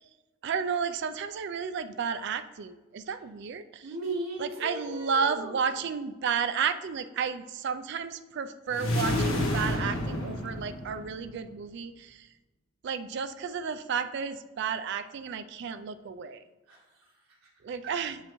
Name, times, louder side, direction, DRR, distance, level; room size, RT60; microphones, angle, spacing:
voice 1, 0.4-3.9 4.4-12.3 12.8-16.4 17.6-18.2, right 6 dB, 55° right, 10 dB, 0.3 m, -32 dB
voice 2, 3.8-5.8 16.7-17.9, right 2 dB, 85° right, -4 dB, 1.4 m, -38 dB
sound 1, 8.7-11.3, left 1 dB, 80° left, 1.2 m, -29 dB
7.0 x 5.5 x 3.1 m, 1.1 s
head